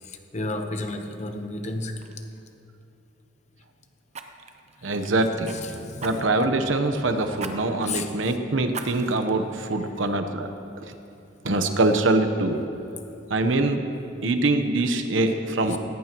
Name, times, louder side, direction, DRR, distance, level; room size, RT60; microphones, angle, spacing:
voice 1, 0.0-2.0 5.5-5.7 7.8-8.1 15.7-15.8, left 2 dB, 35° left, 5 dB, 0.9 m, -32 dB
Fire, 1.4-1.6 2.0-2.2 4.1-5.6 6.0-6.5 7.4-7.5 8.0-8.1 8.7-9.3 9.8-9.9, right 5 dB, 35° right, 0.7 m, -38 dB
voice 2, 4.8-10.5 11.4-12.6 13.3-13.8 14.2-15.8, right 2 dB, 80° right, 7 dB, 1.0 m, -24 dB
18.0 x 17.0 x 3.0 m, 2.8 s
head